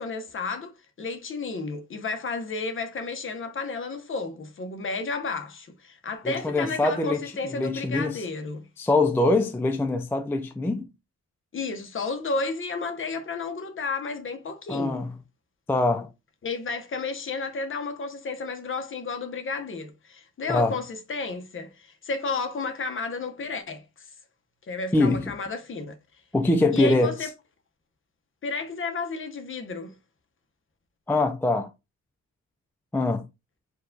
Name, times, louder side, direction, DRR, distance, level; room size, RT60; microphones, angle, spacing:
voice 1, 0.0-8.6 11.5-15.0 16.4-24.1 24.7-25.9 26.7-27.3 28.4-29.9, left 3 dB, 45° left, 0.8 m, -32 dB
voice 2, 6.2-8.2 8.8-10.9 14.7-15.1 15.7-16.1 20.5-20.8 24.9-25.3 26.3-27.1 31.1-31.7 32.9-33.3, left 2 dB, 10° left, 0.3 m, -23 dB
4.5 x 2.3 x 3.8 m
wide cardioid pair, 160°, 30 cm